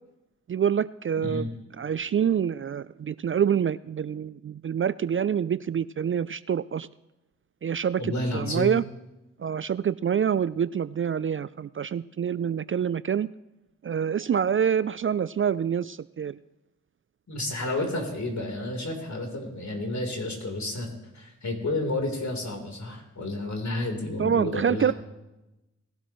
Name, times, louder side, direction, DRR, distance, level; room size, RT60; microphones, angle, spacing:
voice 1, 0.5-1.5 1.8-6.9 7.6-8.8 9.4-13.3 13.8-16.4 24.2-24.9, right 8 dB, 40° right, 17 dB, 0.4 m, -26 dB
voice 2, 8.0-8.8 12.5-12.6 14.1-14.2 17.3-20.9 21.1-24.9, left 2 dB, 55° left, 2 dB, 3.8 m, -31 dB
19.5 x 12.0 x 3.1 m, 0.98 s
supercardioid pair, 45°, 34 cm